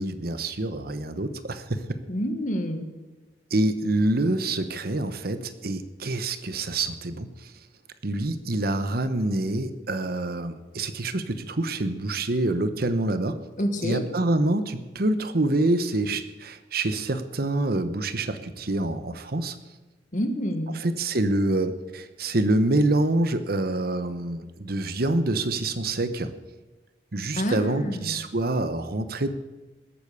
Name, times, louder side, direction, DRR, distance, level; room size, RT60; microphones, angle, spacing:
voice 1, 0.0-1.8 3.5-7.5 8.0-13.4 13.8-19.6 20.7-26.3 27.1-29.3, right 2 dB, 60° right, 10 dB, 1.0 m, -26 dB
voice 2, 2.1-2.9 13.6-14.0 20.1-20.8 27.4-28.2, equal, 45° left, 7 dB, 1.7 m, -28 dB
20.0 x 8.5 x 6.9 m, 1.2 s
head